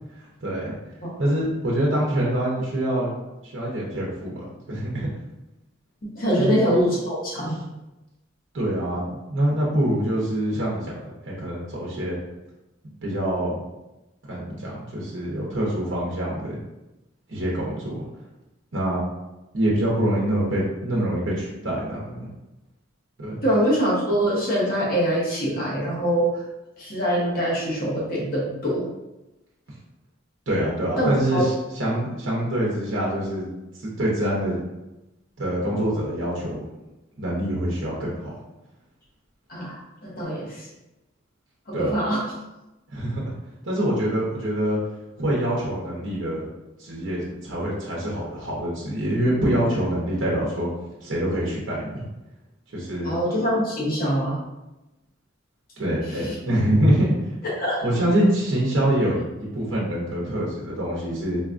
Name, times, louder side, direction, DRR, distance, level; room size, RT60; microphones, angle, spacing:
voice 1, 0.2-0.7 1.2-3.1 3.4-5.1 6.4-6.6 8.5-12.2 13.0-13.6 14.3-16.6 17.3-18.1 18.7-19.0 19.5-22.2 23.2-23.4 30.5-33.5 33.8-34.6 35.4-36.6 37.2-38.3 41.7-42.0 42.9-43.3 43.6-44.8 45.2-46.5 46.8-50.7 51.0-52.0 52.7-53.1 55.8-57.1 57.8-61.4, right 1 dB, 70° right, -5 dB, 0.8 m, -25 dB
voice 2, 6.0-7.6 23.4-26.3 26.8-28.8 31.0-31.4 39.5-40.7 41.7-42.2 53.0-54.4 56.2-56.3 57.6-57.8, equal, 45° left, -5 dB, 1.0 m, -24 dB
4.0 x 2.2 x 2.5 m, 0.98 s
head